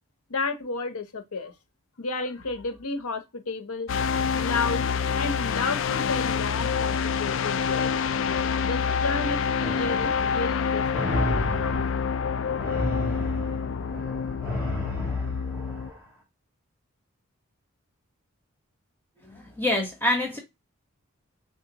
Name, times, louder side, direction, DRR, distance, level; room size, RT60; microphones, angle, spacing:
voice 1, 0.3-1.5 2.0-3.9 4.3-7.9 8.6-11.8 12.7-12.8 13.5-13.6, left 3 dB, 90° left, 0.8 m, -32 dB
sound 1, 3.9-15.9, left 6 dB, 60° left, 0.3 m, -27 dB
sound 2, 9.6-16.1, equal, 10° right, 2.8 m, -34 dB
voice 2, 19.2-20.4, left 1 dB, 10° left, 1.2 m, -26 dB
6.3 x 2.4 x 2.9 m
head